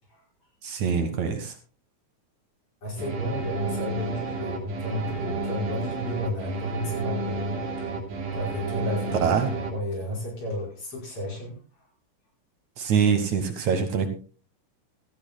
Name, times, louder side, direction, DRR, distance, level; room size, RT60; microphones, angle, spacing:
voice 1, 0.6-1.5 9.2-9.5 12.8-14.1, right 6 dB, 65° right, 6 dB, 2.7 m, -24 dB
voice 2, 2.8-7.9 8.3-11.6, left 1 dB, 45° left, -2 dB, 6.1 m, -32 dB
sound 1, 3.0-9.7, right 4 dB, 80° right, 4.6 m, -31 dB
17.0 x 13.5 x 2.2 m, 0.38 s
omnidirectional pair, 3.7 m